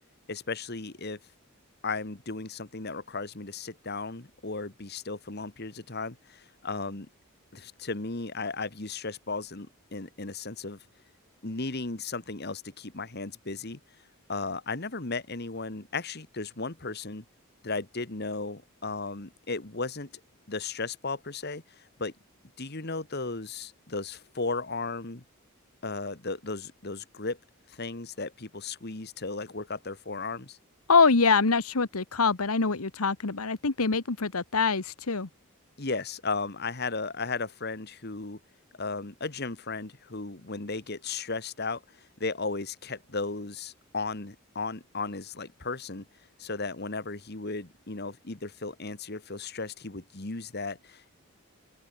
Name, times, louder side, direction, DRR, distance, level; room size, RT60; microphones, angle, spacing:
voice 1, 0.3-1.2 1.8-7.1 7.5-10.8 11.4-13.8 14.3-17.2 17.6-20.1 20.5-22.1 22.6-25.2 25.8-27.4 27.7-30.6 35.8-38.4 38.8-46.0 46.4-51.1, left 3 dB, 50° left, 1.8 m, -35 dB
voice 2, 30.9-35.3, left 4 dB, 85° left, 1.3 m, -24 dB
open air
head